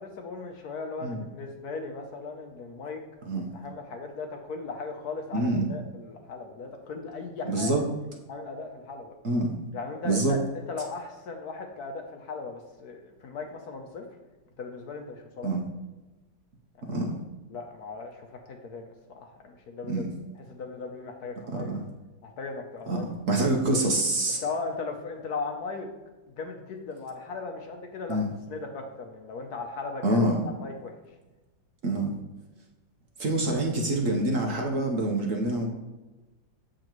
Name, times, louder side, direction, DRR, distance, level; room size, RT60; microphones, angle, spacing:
voice 1, 0.0-3.0 3.5-7.7 8.3-9.1 9.7-14.0 14.6-15.5 16.8-17.0 17.5-20.0 20.5-21.7 22.2-23.1 24.4-25.9 26.4-30.2 30.6-31.0, left 4 dB, 65° left, 4 dB, 1.2 m, -37 dB
voice 2, 5.3-5.7 7.4-7.8 9.2-9.5 10.0-10.4 15.4-15.6 16.9-17.1 19.9-20.1 21.5-21.9 22.9-24.4 28.1-28.2 30.0-30.4 31.8-32.1 33.2-35.7, right 2 dB, 50° right, 1 dB, 1.1 m, -26 dB
7.7 x 7.0 x 3.0 m, 1.1 s
omnidirectional pair, 2.0 m